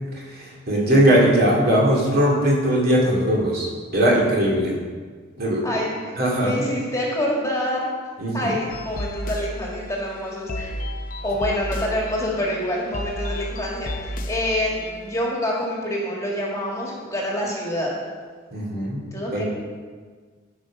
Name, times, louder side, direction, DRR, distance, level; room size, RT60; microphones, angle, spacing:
voice 1, 0.3-4.7 5.4-5.7 6.2-6.5 8.2-8.5 18.5-19.0 19.3-19.4, equal, 45° right, -3 dB, 2.4 m, -19 dB
voice 2, 5.6-6.1 6.4-7.9 8.3-10.8 11.2-18.0 19.1-19.4, left 1 dB, 15° left, -3 dB, 1.8 m, -26 dB
sound 1, 8.7-15.2, left 1 dB, 40° left, 0.7 m, -33 dB
13.5 x 5.2 x 5.9 m, 1.5 s
head